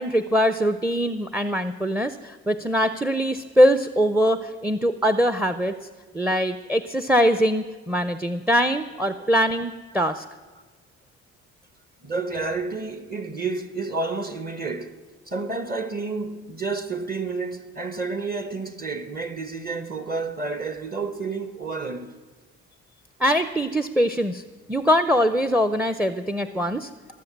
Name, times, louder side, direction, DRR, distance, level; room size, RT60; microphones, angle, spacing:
voice 1, 0.0-5.7 6.1-10.2 23.2-24.4 24.7-26.9, equal, 5° right, 0.5 m, -22 dB
voice 2, 12.0-15.0 15.3-22.2, right 4 dB, 30° right, 1.0 m, -30 dB
20.5 x 7.6 x 7.3 m
cardioid pair, 90°, 30 cm